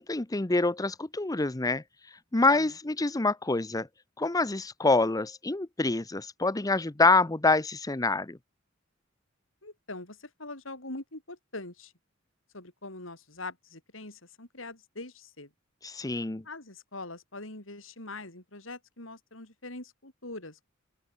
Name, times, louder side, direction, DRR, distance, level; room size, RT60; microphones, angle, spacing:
voice 1, 0.0-1.8 2.3-3.9 4.2-8.4 15.8-16.4, left 3 dB, 20° left, 0.7 m, -26 dB
voice 2, 9.6-11.9 12.5-15.5 16.4-20.7, left 2 dB, 75° left, 6.6 m, -43 dB
open air
head